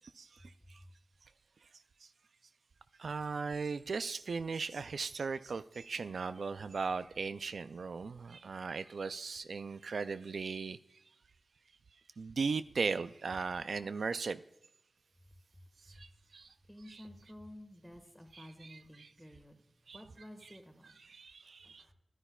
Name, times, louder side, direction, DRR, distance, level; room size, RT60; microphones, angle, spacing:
voice 1, 0.2-0.8 2.0-2.1 3.0-10.8 12.2-14.4 15.9-16.5 16.9-17.0 18.3-19.1 19.9-20.0 20.4-20.5 21.0-21.8, right 4 dB, 90° right, 12 dB, 0.3 m, -38 dB
voice 2, 15.5-16.1 16.7-21.0 21.4-21.9, equal, ahead, 5 dB, 1.5 m, -53 dB
11.0 x 9.8 x 2.3 m, 0.83 s
wide cardioid pair, 85°, 0 cm